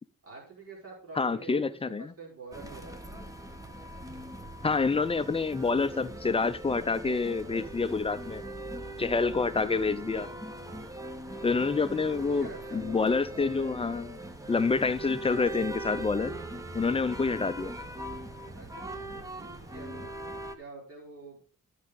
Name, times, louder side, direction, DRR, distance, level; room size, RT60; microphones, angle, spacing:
voice 1, 0.2-3.3 11.9-13.2 18.5-20.1 20.6-21.4, right 4 dB, 45° right, 3.9 m, -47 dB
voice 2, 1.2-2.1 4.6-8.4 9.0-10.3 11.4-14.2 14.5-16.3 16.7-17.7, left 4 dB, 20° left, 0.4 m, -27 dB
sound 1, 2.5-20.6, right 1 dB, 10° right, 0.9 m, -41 dB
12.0 x 6.3 x 3.8 m
wide cardioid pair, 170°, 31 cm